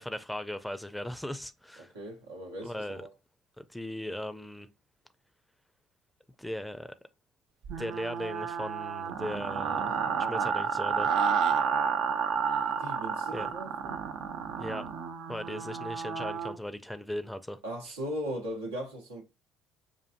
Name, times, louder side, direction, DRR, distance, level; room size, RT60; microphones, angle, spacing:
voice 1, 0.0-1.9 2.6-3.0 3.6-4.7 6.4-6.9 7.8-10.0 10.3-11.1 13.3-13.5 14.6-14.9 15.3-17.6, left 1 dB, 5° left, 0.5 m, -38 dB
voice 2, 1.8-3.1 12.6-14.0 17.6-19.2, equal, 90° right, 0.9 m, -38 dB
sound 1, 7.6-16.5, right 6 dB, 65° right, 0.5 m, -31 dB
5.5 x 2.5 x 2.5 m
hypercardioid pair, 60°, 0 cm